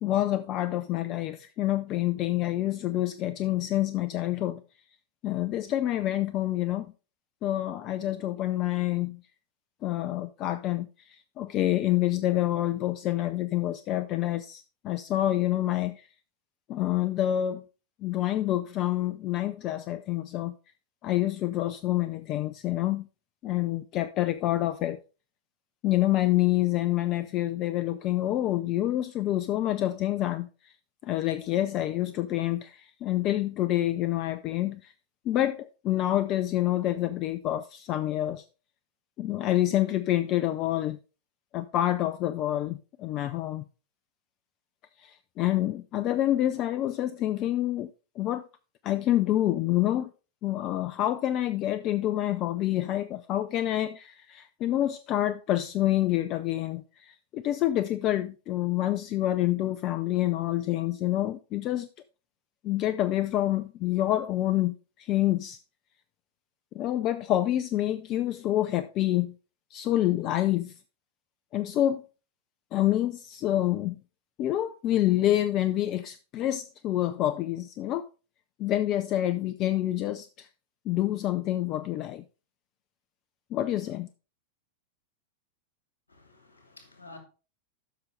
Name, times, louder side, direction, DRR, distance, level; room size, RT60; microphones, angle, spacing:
voice 1, 0.0-4.6 5.2-6.9 7.4-9.2 9.8-16.1 16.7-17.6 18.0-20.5 21.0-23.1 23.4-25.0 25.8-30.7 31.0-34.9 35.3-38.4 39.2-41.0 41.5-43.6 45.0-47.9 48.2-48.5 48.8-50.1 50.4-61.9 62.6-65.6 66.7-69.3 69.7-70.7 71.5-72.0 72.7-74.0 74.4-78.0 78.6-80.5 80.9-82.2 83.5-84.1, left 14 dB, 35° left, 0.4 m, -27 dB
voice 2, 86.1-87.2, left 3 dB, 75° left, 2.8 m, -50 dB
12.5 x 6.1 x 3.3 m
figure-of-eight pair, 90°, 0 cm